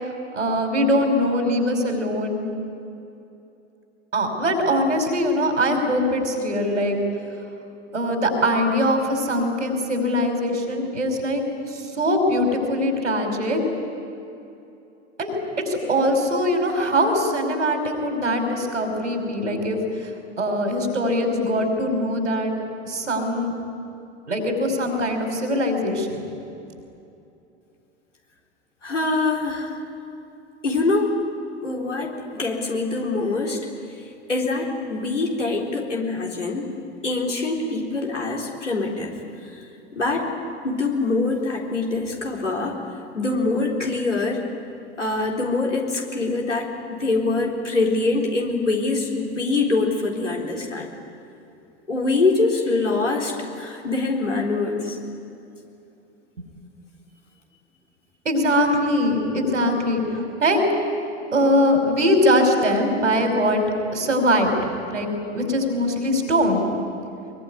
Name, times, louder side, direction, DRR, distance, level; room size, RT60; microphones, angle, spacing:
voice 1, 0.3-2.4 4.1-7.0 7.9-13.6 15.2-15.4 15.7-20.1 20.4-22.5 22.9-23.5 24.3-26.2 58.3-60.0 60.4-60.6 61.3-63.6 63.9-64.5 64.9-66.6, equal, 80° right, 3 dB, 5.4 m, -22 dB
voice 2, 28.8-29.8 30.6-31.2 31.6-33.6 34.3-36.7 37.0-39.1 39.5-39.6 39.9-40.3 40.6-42.8 43.1-44.4 45.0-50.9 51.9-55.0, left 3 dB, 85° left, -1 dB, 4.0 m, -24 dB
23.5 x 23.0 x 9.8 m, 2.7 s
figure-of-eight pair, 85°, 36 cm